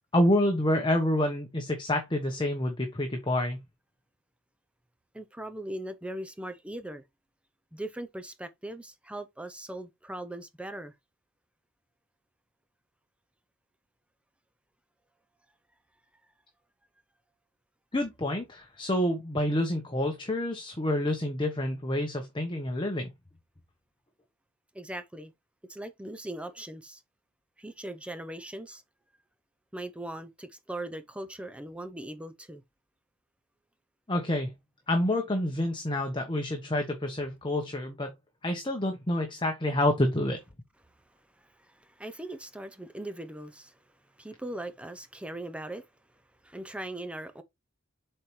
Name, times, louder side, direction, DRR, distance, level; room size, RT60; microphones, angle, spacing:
voice 1, 0.1-3.6 17.9-23.1 34.1-34.5 34.9-38.1 38.4-40.4, left 1 dB, 25° left, 1.0 m, -28 dB
voice 2, 5.1-7.0 7.7-10.9 24.7-25.3 25.7-27.0 27.6-28.8 29.7-32.6 41.1-45.9 46.4-47.4, right 1 dB, 5° right, 0.6 m, -40 dB
7.5 x 4.4 x 3.2 m
head